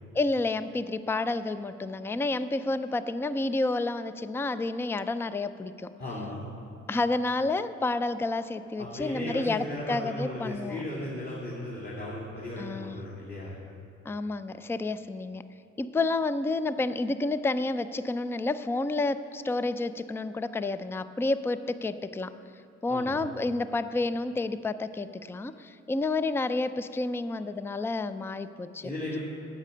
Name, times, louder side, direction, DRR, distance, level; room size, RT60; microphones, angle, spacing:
voice 1, 0.1-5.9 6.9-10.8 12.6-13.1 14.1-15.4 15.8-22.3 22.8-28.9, left 2 dB, 10° left, 13 dB, 0.3 m, -30 dB
voice 2, 6.0-6.4 8.8-13.5 22.9-23.2 28.8-29.2, left 1 dB, 30° left, -7 dB, 2.6 m, -36 dB
10.0 x 8.3 x 6.7 m, 2.7 s
cardioid pair, 90°, 30 cm